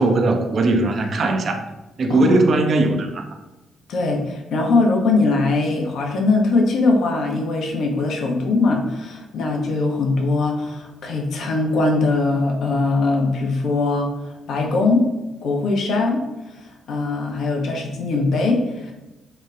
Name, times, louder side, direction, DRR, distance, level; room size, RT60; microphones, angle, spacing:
voice 1, 0.0-1.6 2.0-3.3, right 2 dB, 45° right, 5 dB, 0.3 m, -19 dB
voice 2, 3.9-14.1 14.5-15.1 15.4-16.2 16.6-18.9, left 3 dB, 55° left, 1 dB, 0.4 m, -21 dB
2.9 x 2.1 x 2.3 m, 1.0 s
figure-of-eight pair, 40°, 0 cm